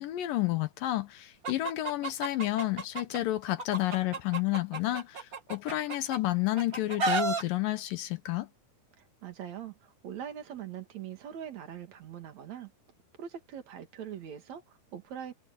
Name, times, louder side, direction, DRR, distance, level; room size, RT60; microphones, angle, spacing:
voice 1, 0.0-8.5, left 16 dB, 75° left, 2.4 m, -30 dB
Chicken rooster, 1.4-3.2 3.6-6.2 6.6-7.4, right 4 dB, 35° right, 1.6 m, -32 dB
voice 2, 9.0-12.7 13.2-15.3, right 9 dB, 55° right, 2.9 m, -42 dB
omnidirectional pair, 4.3 m